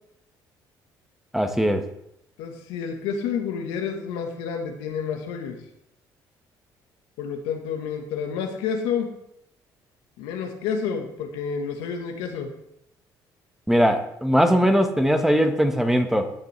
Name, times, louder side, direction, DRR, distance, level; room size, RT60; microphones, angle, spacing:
voice 1, 1.3-1.8 13.7-16.3, equal, 5° right, 6 dB, 1.4 m, -20 dB
voice 2, 2.4-5.6 7.2-9.2 10.2-12.5 14.6-14.7, left 6 dB, 85° left, 3 dB, 1.4 m, -29 dB
16.0 x 6.8 x 3.4 m, 0.77 s
supercardioid pair, 75°, 9 cm